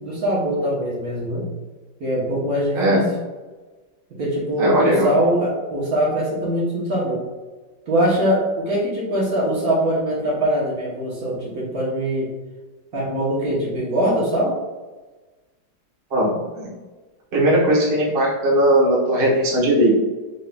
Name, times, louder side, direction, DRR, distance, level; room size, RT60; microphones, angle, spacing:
voice 1, 0.0-1.5 2.0-3.0 4.2-7.3 7.9-12.3 12.9-14.5, right 1 dB, 55° right, -6 dB, 1.3 m, -22 dB
voice 2, 4.6-5.1 16.1-16.7 17.3-19.9, right 1 dB, 40° right, -5 dB, 1.0 m, -18 dB
3.8 x 3.6 x 2.2 m, 1.2 s
omnidirectional pair, 2.0 m